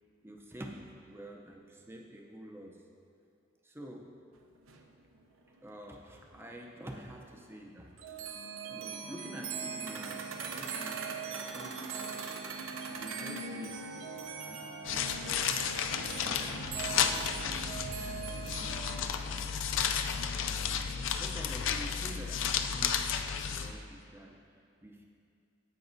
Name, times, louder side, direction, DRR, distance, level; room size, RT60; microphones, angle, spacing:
voice 1, 0.2-2.8 3.6-4.2 5.6-7.9 8.7-11.9 12.5-15.5 16.2-17.7 18.4-19.5 20.3-23.1 23.5-24.4 24.8-25.0, equal, 10° right, 1 dB, 0.5 m, -48 dB
sound 1, 4.4-4.5 4.6-6.7 7.0-7.1 7.5-7.6 8.0-19.0, right 5 dB, 85° right, 0.6 m, -41 dB
sound 2, 14.8-23.7, left 7 dB, 75° left, 0.4 m, -33 dB
15.0 x 5.2 x 2.6 m, 2.4 s
head